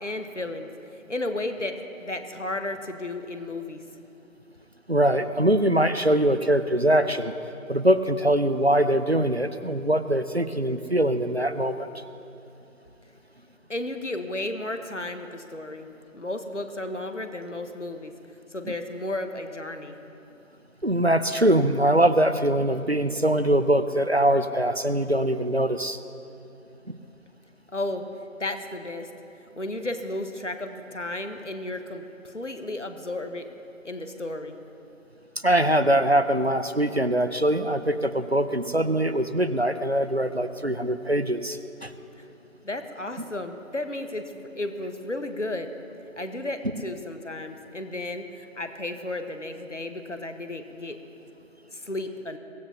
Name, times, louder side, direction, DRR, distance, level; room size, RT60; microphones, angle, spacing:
voice 1, 0.0-3.8 13.7-15.9 16.1-18.1 18.5-20.0 27.7-28.1 28.4-29.1 29.6-33.4 33.8-34.6 42.2-42.3 42.6-45.7 46.2-51.0 51.7-52.4, left 2 dB, 60° left, 7 dB, 1.4 m, -33 dB
voice 2, 4.9-7.4 7.7-12.0 18.6-18.7 20.8-26.0 35.4-41.9, right 1 dB, 50° right, 11 dB, 0.6 m, -23 dB
23.5 x 15.0 x 2.9 m, 2.8 s
figure-of-eight pair, 180°, 41 cm